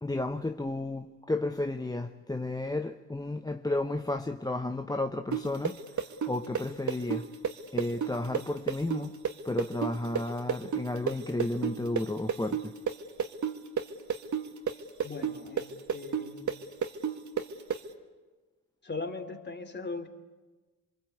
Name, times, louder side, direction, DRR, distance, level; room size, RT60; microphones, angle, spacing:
voice 1, 0.0-6.0 6.3-7.3 7.7-9.2 9.4-12.7, left 2 dB, 10° left, 0.9 m, -32 dB
sound 1, 5.3-12.9 13.2-17.8, right 7 dB, 45° right, 2.1 m, -30 dB
voice 2, 15.0-16.5 18.8-20.1, left 3 dB, 25° left, 3.0 m, -39 dB
28.0 x 23.5 x 8.4 m
supercardioid pair, 70°, 41 cm